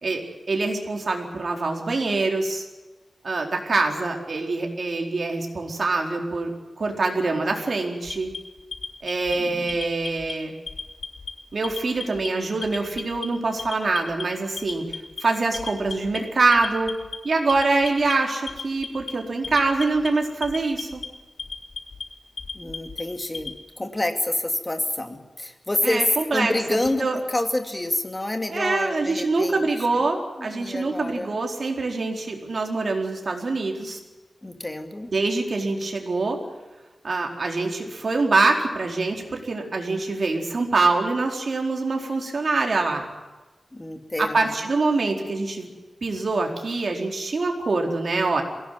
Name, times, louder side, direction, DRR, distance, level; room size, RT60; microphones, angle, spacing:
voice 1, 0.5-2.6 3.2-8.3 9.0-10.5 11.5-16.9 17.2-21.0 25.8-26.5 27.0-27.2 28.5-34.0 35.1-36.4 37.0-43.1 44.2-45.7 46.0-48.4, right 3 dB, 60° right, 2 dB, 4.4 m, -24 dB
Alarm, 8.0-9.3 9.7-10.3 10.7-11.3 11.6-12.3 12.6-13.3 13.6-14.2 14.6-15.2 15.5-16.2 16.5-17.2 17.5-18.1 18.5-19.1 19.4-20.1 20.4-21.1 21.4-22.0 22.4-23.6, left 5 dB, 85° left, 2.8 m, -34 dB
voice 2, 9.3-9.7 22.5-30.1 30.4-31.4 34.4-35.1 43.7-44.5, left 1 dB, 20° left, 5 dB, 2.6 m, -28 dB
22.5 x 17.5 x 9.4 m, 1.2 s
wide cardioid pair, 110°, 0 cm